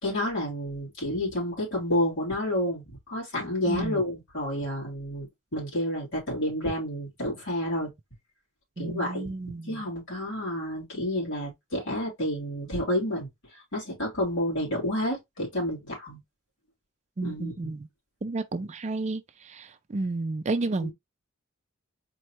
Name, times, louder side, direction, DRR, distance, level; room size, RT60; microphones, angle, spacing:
voice 1, 0.0-7.9 8.8-13.3 13.7-16.2 17.2-17.7 20.8-20.9, left 1 dB, 60° left, 3.1 m, -30 dB
voice 2, 3.6-4.0 8.8-9.8 17.2-17.9 18.2-20.9, right 2 dB, 35° right, 0.4 m, -31 dB
4.5 x 3.2 x 2.9 m
head